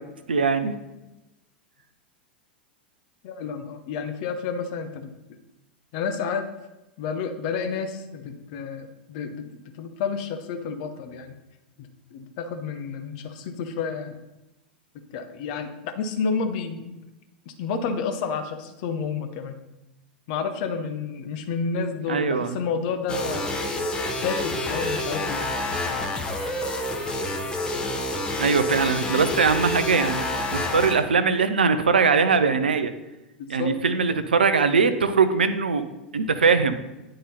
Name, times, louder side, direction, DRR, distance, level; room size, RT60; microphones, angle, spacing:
voice 1, 0.3-0.8 22.1-22.6 28.4-32.9 33.5-35.8 36.1-36.8, right 5 dB, 70° right, 11 dB, 0.5 m, -21 dB
voice 2, 3.2-5.1 5.9-6.5 7.0-11.3 12.1-14.1 15.1-17.0 17.5-19.6 20.3-23.6 24.2-25.5 33.4-33.7, left 5 dB, 50° left, 7 dB, 0.9 m, -30 dB
sound 1, 23.1-30.9, left 1 dB, 15° left, 1.0 m, -28 dB
9.8 x 3.8 x 4.2 m, 0.98 s
figure-of-eight pair, 90°, 5 cm